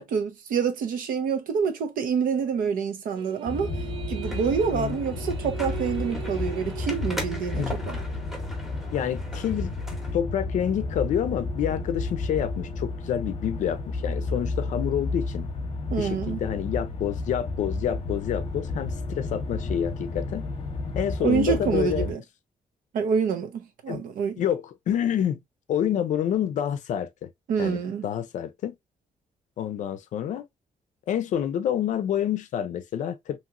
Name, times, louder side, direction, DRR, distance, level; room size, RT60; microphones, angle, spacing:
voice 1, 0.0-3.7 4.1-8.0 15.9-16.4 21.2-22.2 22.9-24.4 27.5-28.1, right 6 dB, 90° right, 0.7 m, -27 dB
sound 1, 3.2-9.0, right 11 dB, 40° right, 0.4 m, -41 dB
sound 2, 3.5-22.1, left 3 dB, 40° left, 0.8 m, -32 dB
sound 3, 4.2-10.1, equal, 5° right, 0.8 m, -40 dB
voice 2, 8.9-9.7 10.1-15.5 16.0-20.5 20.9-22.1 23.9-24.0 24.4-25.4 25.7-27.3 27.6-28.7 29.6-30.4 31.1-33.4, left 9 dB, 65° left, 0.5 m, -28 dB
2.9 x 2.9 x 2.5 m
wide cardioid pair, 180°, 14 cm